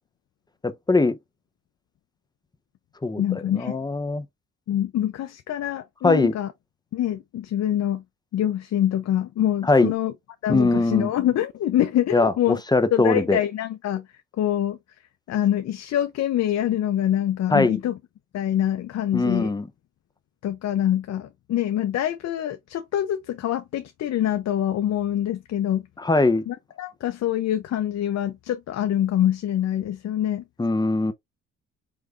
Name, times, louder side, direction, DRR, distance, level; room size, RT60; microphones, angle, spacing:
voice 1, 0.6-1.2 3.0-3.2 3.5-4.2 6.0-6.3 9.6-9.9 10.5-11.1 12.1-13.4 17.5-17.8 19.1-19.7 26.0-26.4 30.6-31.1, left 2 dB, 15° left, 0.7 m, -21 dB
voice 2, 3.2-3.8 4.7-6.5 6.9-8.0 8.3-10.1 10.4-12.6 12.9-14.1 14.4-14.8 15.3-18.0 18.3-19.5 20.4-25.8 26.5-30.4, left 11 dB, 60° left, 0.6 m, -25 dB
4.8 x 3.4 x 2.4 m
cardioid pair, 90°, 30 cm